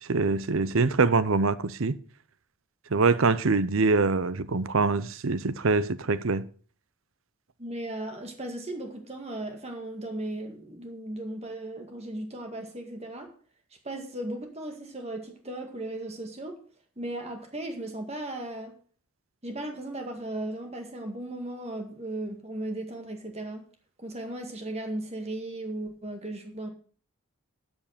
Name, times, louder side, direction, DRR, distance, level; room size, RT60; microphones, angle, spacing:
voice 1, 0.1-2.0 2.9-6.4, right 4 dB, 65° right, 0.7 m, -24 dB
voice 2, 7.6-13.3 13.8-16.6 17.0-18.8 19.4-23.7 24.0-26.7, right 1 dB, 30° right, 1.9 m, -36 dB
12.5 x 5.4 x 6.7 m
head